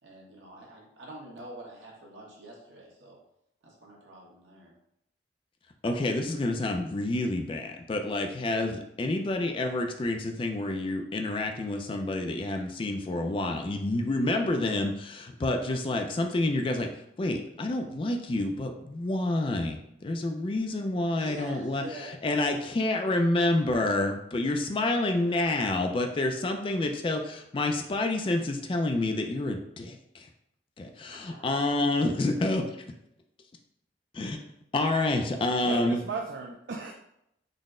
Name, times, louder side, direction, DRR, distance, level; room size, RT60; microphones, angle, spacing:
voice 1, 0.0-3.2 3.6-4.7 21.2-22.2 31.1-31.5, right 1 dB, 85° right, -2 dB, 1.1 m, -46 dB
voice 2, 5.8-16.9 17.2-21.8 22.2-30.3 30.8-32.6 34.1-34.4 34.7-36.0, left 2 dB, 30° left, 4 dB, 0.3 m, -28 dB
voice 3, 35.6-36.9, right 4 dB, 70° right, 1 dB, 0.4 m, -35 dB
3.9 x 2.1 x 3.6 m, 0.77 s
head